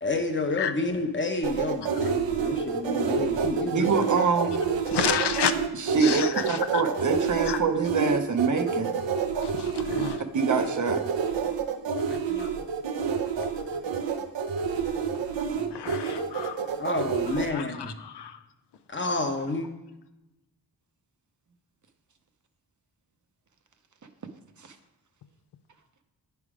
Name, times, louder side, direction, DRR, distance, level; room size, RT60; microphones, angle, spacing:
voice 1, 0.0-4.0 12.1-12.6 15.1-15.7 16.8-17.9 18.9-19.7, left 2 dB, 25° left, 5 dB, 0.9 m, -30 dB
sound 1, 1.4-17.5, right 6 dB, 90° right, 0.7 m, -28 dB
voice 2, 3.7-4.6 5.8-8.9 10.3-11.0, right 5 dB, 45° right, 7 dB, 0.7 m, -25 dB
voice 3, 4.9-5.5 6.0-6.8 7.4-7.6 9.4-10.2 15.7-16.7 17.5-17.7 18.0-18.4, left 8 dB, 70° left, 10 dB, 0.6 m, -30 dB
9.4 x 3.4 x 4.9 m, 0.97 s
wide cardioid pair, 95°, 43 cm